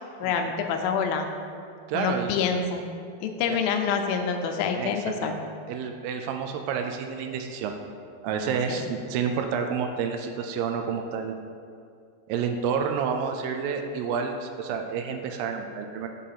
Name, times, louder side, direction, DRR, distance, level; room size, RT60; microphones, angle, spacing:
voice 1, 0.2-1.3 1.9-2.9 3.2-5.4 8.7-8.8, left 6 dB, 85° left, 5 dB, 2.3 m, -27 dB
voice 2, 1.9-2.3 3.5-3.6 4.7-5.4 5.7-7.8 8.2-11.3 12.3-16.1, right 6 dB, 80° right, 4 dB, 2.2 m, -29 dB
6.6 x 3.8 x 5.6 m, 2.4 s
omnidirectional pair, 4.2 m